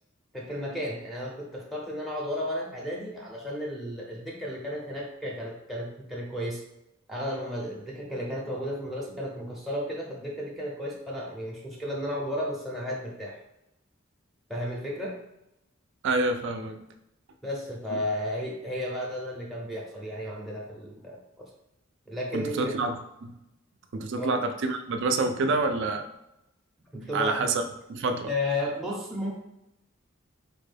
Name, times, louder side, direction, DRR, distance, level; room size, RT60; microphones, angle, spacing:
voice 1, 0.3-6.6 7.1-13.4 14.5-15.2 17.4-21.5 22.1-22.8 24.2-24.4 26.9-27.6 28.3-29.3, left 1 dB, ahead, -3 dB, 0.5 m, -33 dB
voice 2, 16.0-16.8 22.3-23.0 23.2-23.3 23.9-26.1 26.9-27.6 27.9-28.3, right 3 dB, 60° right, 6 dB, 0.4 m, -27 dB
4.4 x 2.2 x 3.3 m, 0.88 s
head